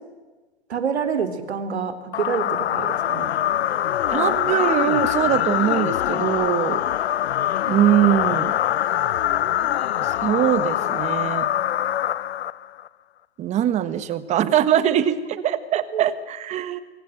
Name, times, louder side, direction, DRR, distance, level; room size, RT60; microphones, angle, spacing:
voice 1, 0.7-3.3 15.9-16.0, right 6 dB, 75° right, 8 dB, 3.4 m, -27 dB
sound 1, 2.1-12.9, left 12 dB, 75° left, 0.8 m, -23 dB
voice 2, 4.1-6.8 7.7-8.6 10.0-11.5 13.4-16.8, right 11 dB, 20° right, 14 dB, 1.4 m, -22 dB
24.5 x 24.0 x 7.9 m, 1.3 s
hypercardioid pair, 145°, 33 cm